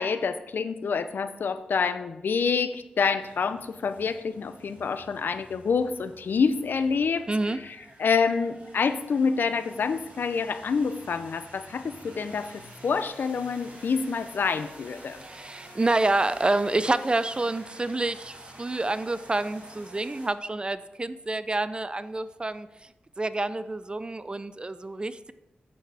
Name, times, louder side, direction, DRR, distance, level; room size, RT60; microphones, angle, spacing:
voice 1, 0.0-7.3 7.6-15.2, left 5 dB, 75° left, 12 dB, 0.5 m, -27 dB
sound 1, 3.2-20.3, right 1 dB, 45° right, 2.6 m, -49 dB
voice 2, 7.3-7.6 15.2-22.7 23.2-25.3, right 2 dB, 30° right, 14 dB, 0.4 m, -28 dB
9.0 x 7.2 x 3.4 m, 0.95 s
cardioid pair, 55°, 3 cm